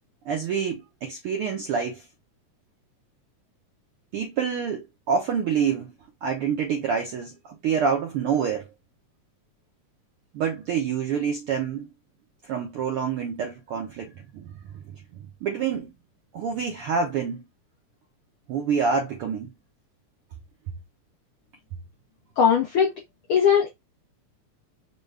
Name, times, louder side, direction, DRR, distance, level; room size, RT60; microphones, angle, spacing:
voice 1, 0.2-2.0 4.1-5.9 6.2-8.7 10.3-11.9 12.4-14.5 14.9-15.0 15.4-15.9 16.3-17.4 18.5-19.5, right 6 dB, 80° right, 1.2 m, -27 dB
voice 2, 22.4-22.9 23.3-23.7, left 7 dB, 85° left, 1.1 m, -19 dB
5.1 x 2.3 x 3.2 m
omnidirectional pair, 3.4 m